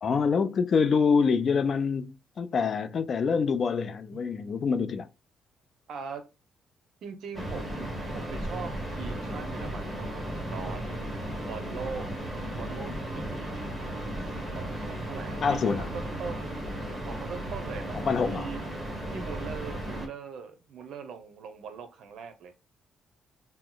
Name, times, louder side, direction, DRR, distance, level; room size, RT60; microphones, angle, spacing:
voice 1, 0.0-5.1 15.4-15.9 17.9-18.5, left 5 dB, 50° left, 0.4 m, -26 dB
voice 2, 5.9-6.2 7.0-10.9 11.5-12.1 12.5-13.7 14.2-16.5 17.1-18.6 19.1-22.5, right 6 dB, 70° right, 0.7 m, -41 dB
sound 1, 7.3-20.1, right 1 dB, 5° right, 1.5 m, -35 dB
2.9 x 2.1 x 3.8 m
cardioid pair, 90°, 0 cm